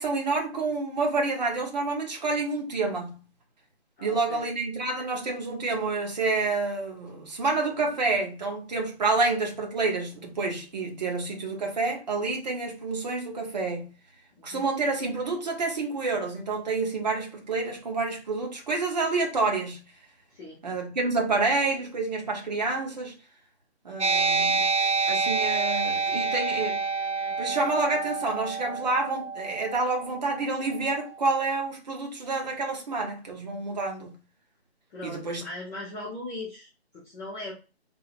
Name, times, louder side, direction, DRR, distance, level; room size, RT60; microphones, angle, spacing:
voice 1, 0.0-3.2 4.0-13.9 14.4-19.8 20.6-23.2 23.8-24.7 25.1-26.8 27.4-34.1 35.0-35.4, right 3 dB, 40° right, 1.2 m, -28 dB
voice 2, 4.0-4.4 14.4-14.7 20.3-20.6 34.9-37.5, left 2 dB, 5° left, 0.5 m, -39 dB
sound 1, 24.0-31.1, right 4 dB, 90° right, 0.9 m, -28 dB
3.8 x 2.3 x 4.2 m
hypercardioid pair, 160°, 33 cm